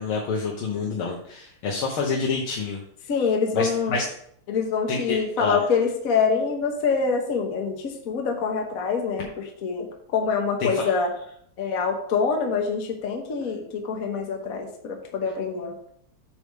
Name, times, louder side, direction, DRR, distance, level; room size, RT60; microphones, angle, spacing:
voice 1, 0.0-2.8 3.5-4.1 4.9-5.6 10.6-10.9, left 4 dB, 75° left, -1 dB, 1.9 m, -27 dB
voice 2, 3.1-4.0 4.5-11.1 11.6-15.7, left 5 dB, 50° left, 2 dB, 1.2 m, -25 dB
8.1 x 3.5 x 6.5 m, 0.66 s
omnidirectional pair, 2.4 m